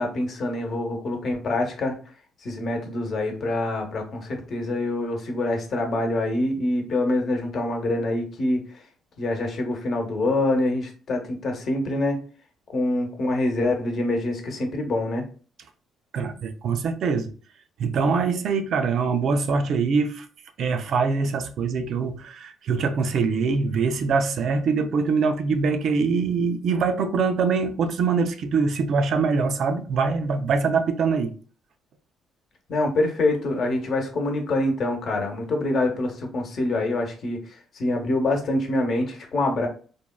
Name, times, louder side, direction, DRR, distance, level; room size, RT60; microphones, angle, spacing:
voice 1, 0.0-2.0 2.4-8.9 9.2-12.2 12.7-15.3 32.7-39.7, left 2 dB, 55° left, 0.8 m, -25 dB
voice 2, 16.1-17.3 17.8-20.3 20.6-31.3, right 5 dB, 65° right, 0.4 m, -23 dB
3.4 x 2.1 x 2.2 m
cardioid pair, 85°, 0 cm